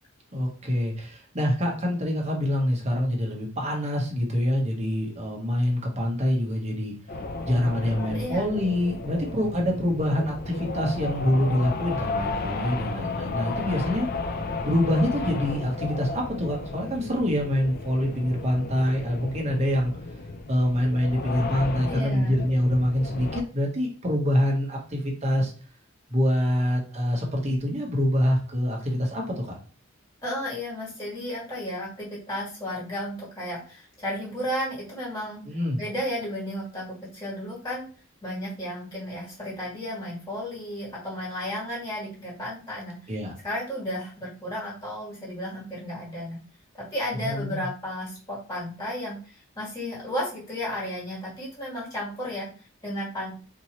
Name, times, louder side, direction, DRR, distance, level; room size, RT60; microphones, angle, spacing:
voice 1, 0.3-6.9 7.4-14.1 14.6-19.9 20.5-25.5 26.1-29.6 35.5-35.8 43.1-43.3 47.2-47.7, left 1 dB, 30° right, 0 dB, 1.1 m, -25 dB
sound 1, 7.1-23.4, left 3 dB, 45° left, 0.4 m, -33 dB
voice 2, 8.0-8.5 21.9-22.4 30.2-35.4 35.8-37.9 38.2-43.1 43.4-46.4 46.9-53.3, equal, 15° left, -6 dB, 1.6 m, -33 dB
4.5 x 2.8 x 3.0 m, 0.39 s
head